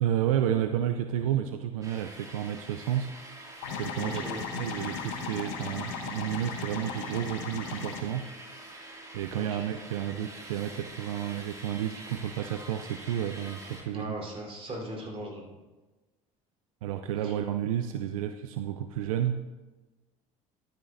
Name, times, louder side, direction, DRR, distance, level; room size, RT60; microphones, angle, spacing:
voice 1, 0.0-3.1 3.7-4.2 4.5-8.3 9.1-14.1 16.8-19.4, right 10 dB, 85° right, 8 dB, 0.4 m, -31 dB
sound 1, 1.8-13.8, right 1 dB, 20° right, 2.2 m, -46 dB
sound 2, 3.6-8.0, left 5 dB, 70° left, 1.2 m, -37 dB
voice 2, 4.0-4.4 9.3-9.7 13.9-15.4 17.2-17.3, right 1 dB, 35° right, -2 dB, 3.6 m, -39 dB
12.0 x 10.0 x 2.6 m, 1.2 s
hypercardioid pair, 70°, 17 cm